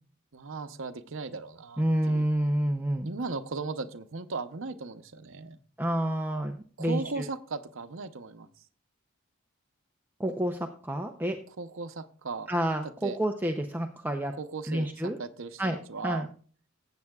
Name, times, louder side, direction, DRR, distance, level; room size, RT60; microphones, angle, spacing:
voice 1, 0.3-2.3 3.0-5.6 6.8-8.5 11.5-12.5 13.0-13.2 14.4-16.3, right 4 dB, 65° right, 9 dB, 0.8 m, -37 dB
voice 2, 1.8-3.1 5.8-7.3 10.2-11.4 12.5-14.3 14.7-15.2 15.6-15.8 16.0-16.3, right 1 dB, 10° right, 4 dB, 0.6 m, -29 dB
15.0 x 8.3 x 2.3 m, 0.42 s
head